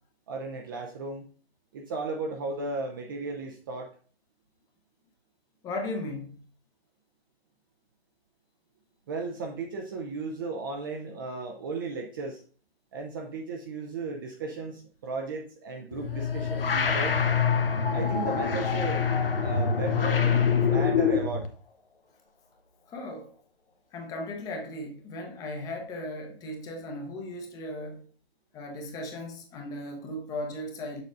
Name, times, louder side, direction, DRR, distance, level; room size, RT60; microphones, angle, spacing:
voice 1, 0.3-1.3 1.7-3.9 9.1-12.4 12.9-17.2 17.9-19.0 19.4-20.4 20.7-21.5, right 3 dB, 20° right, 0.5 m, -35 dB
voice 2, 5.6-6.4 22.9-23.4 23.9-28.1 28.5-31.0, left 1 dB, 10° left, 0.7 m, -37 dB
sound 1, 15.9-21.5, left 6 dB, 65° left, 1.0 m, -25 dB
6.8 x 6.7 x 2.5 m
figure-of-eight pair, 130°, 30 cm